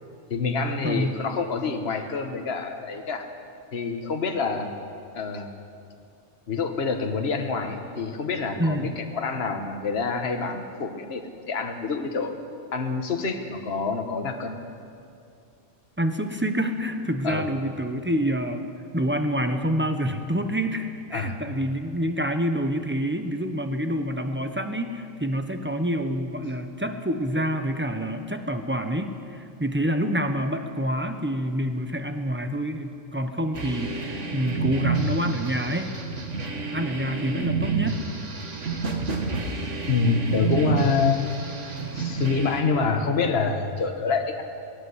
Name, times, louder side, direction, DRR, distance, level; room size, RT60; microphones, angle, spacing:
voice 1, 0.3-3.3 3.7-4.7 5.1-5.5 6.5-12.3 12.7-14.6 17.2-17.5 21.1-21.4 39.9-41.2 41.9-44.4, left 4 dB, 50° left, 5 dB, 1.6 m, -26 dB
voice 2, 0.8-1.2 8.6-9.0 16.0-18.6 18.9-35.9 36.7-38.0, equal, 10° right, 6 dB, 1.0 m, -27 dB
sound 1, 33.5-42.6, right 4 dB, 60° right, 2.0 m, -29 dB
18.5 x 17.0 x 8.1 m, 2.4 s
omnidirectional pair, 1.4 m